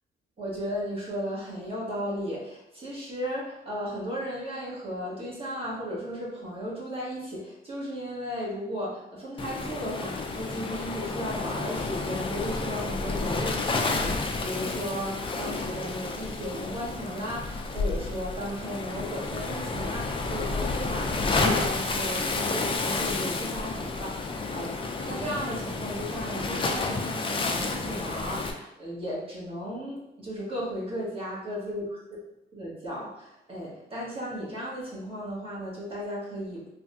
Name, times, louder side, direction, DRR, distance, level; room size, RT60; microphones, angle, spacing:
voice 1, 0.4-32.0 32.5-36.7, equal, 30° right, -6 dB, 1.4 m, -35 dB
Waves surf, 9.4-28.5, left 3 dB, 25° left, 0.4 m, -30 dB
3.4 x 2.3 x 2.7 m, 0.90 s
cardioid pair, 90°, 20 cm